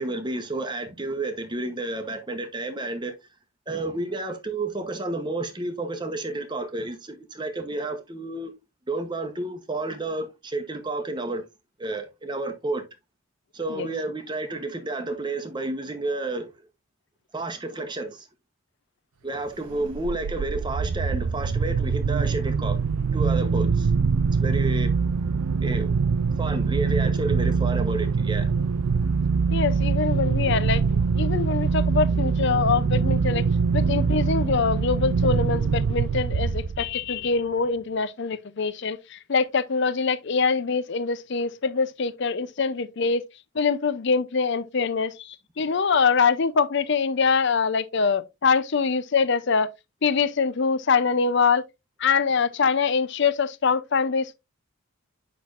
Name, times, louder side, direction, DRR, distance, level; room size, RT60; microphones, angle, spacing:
voice 1, 0.0-3.1 3.7-8.5 8.9-11.4 11.8-12.8 13.5-16.5 17.3-18.3 19.2-22.8 23.1-23.9 24.4-24.9 25.6-25.9 26.4-28.5, right 2 dB, 20° right, 0.9 m, -31 dB
sound 1, 19.7-37.1, right 5 dB, 80° right, 0.4 m, -24 dB
voice 2, 29.5-33.4 33.7-43.2 43.5-49.7 50.0-51.6 52.0-54.4, left 5 dB, 55° left, 0.5 m, -24 dB
8.4 x 5.9 x 2.5 m
head